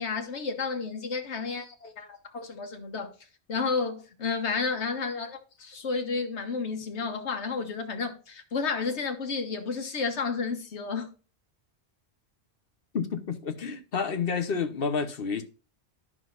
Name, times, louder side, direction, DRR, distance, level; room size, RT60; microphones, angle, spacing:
voice 1, 0.0-3.1 3.5-11.1, left 4 dB, 85° left, 1.5 m, -31 dB
voice 2, 12.9-15.4, left 5 dB, 60° left, 1.1 m, -29 dB
11.5 x 6.1 x 2.5 m
omnidirectional pair, 1.1 m